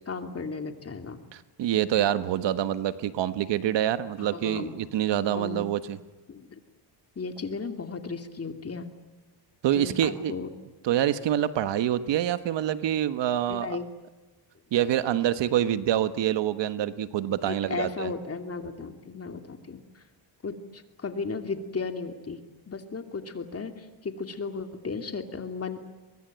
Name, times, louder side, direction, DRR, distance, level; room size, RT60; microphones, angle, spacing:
voice 1, 0.1-1.2 4.2-4.7 5.3-5.7 6.3-6.6 7.2-8.9 9.7-10.5 13.5-13.8 17.4-20.0 20.4-25.9, left 4 dB, 35° left, 6 dB, 2.8 m, -35 dB
voice 2, 1.3-6.0 9.6-10.3 10.8-13.8 14.7-18.1, right 11 dB, 80° right, 12 dB, 1.4 m, -26 dB
23.5 x 22.5 x 9.1 m, 1.2 s
cardioid pair, 105°, 42 cm